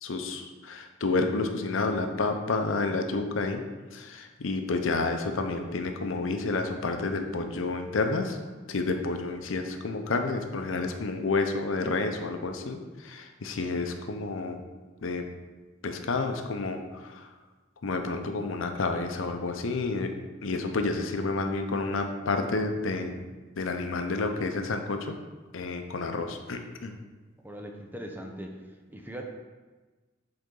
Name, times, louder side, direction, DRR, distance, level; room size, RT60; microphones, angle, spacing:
voice 1, 0.0-3.6 3.9-8.4 8.7-14.6 15.0-15.3 15.8-16.8 17.1-17.3 17.8-20.1 20.4-23.2 23.6-25.2 25.5-26.9, left 3 dB, 80° left, 5 dB, 0.6 m, -30 dB
voice 2, 27.4-28.6 28.9-29.3, right 1 dB, 10° right, 2 dB, 0.6 m, -40 dB
7.9 x 3.9 x 3.8 m, 1.3 s
head